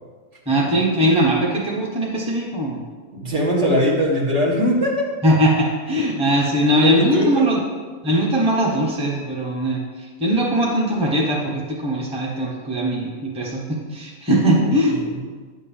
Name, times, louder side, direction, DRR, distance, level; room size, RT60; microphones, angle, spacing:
voice 1, 0.5-2.8 5.2-7.6 8.0-9.8 10.2-15.0, right 1 dB, 5° right, -3 dB, 1.1 m, -20 dB
voice 2, 3.1-5.1 5.9-6.1 6.7-7.5 14.6-15.2, equal, 55° right, -3 dB, 1.9 m, -21 dB
10.0 x 3.7 x 7.1 m, 1.5 s
omnidirectional pair, 1.5 m